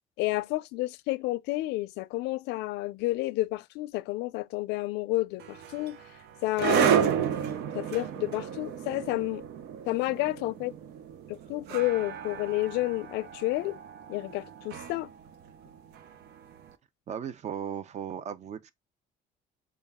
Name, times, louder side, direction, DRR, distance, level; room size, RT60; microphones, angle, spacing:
voice 1, 0.2-6.0 6.4-7.2 7.7-9.4 9.9-10.7 11.3-13.8 14.1-15.1, left 18 dB, 90° left, 0.4 m, -30 dB
sound 1, 5.4-16.5, right 8 dB, 80° right, 0.7 m, -32 dB
voice 2, 17.1-18.7, right 8 dB, 40° right, 0.6 m, -36 dB
5.3 x 2.3 x 3.5 m
cardioid pair, 110°, 17 cm